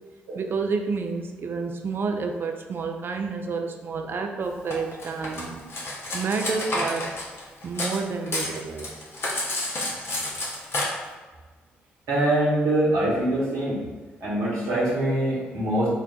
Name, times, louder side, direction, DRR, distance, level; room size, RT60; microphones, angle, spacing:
voice 1, 0.3-5.7 6.1-7.1 7.6-8.9, right 4 dB, 40° right, 4 dB, 0.3 m, -29 dB
Cutlery silverware, 4.7-8.0 8.3-10.8, left 2 dB, 45° left, 0.7 m, -30 dB
voice 2, 12.1-13.8 14.2-15.9, right 1 dB, 55° right, -7 dB, 1.0 m, -23 dB
2.3 x 2.1 x 3.7 m, 1.3 s
figure-of-eight pair, 40°, 6 cm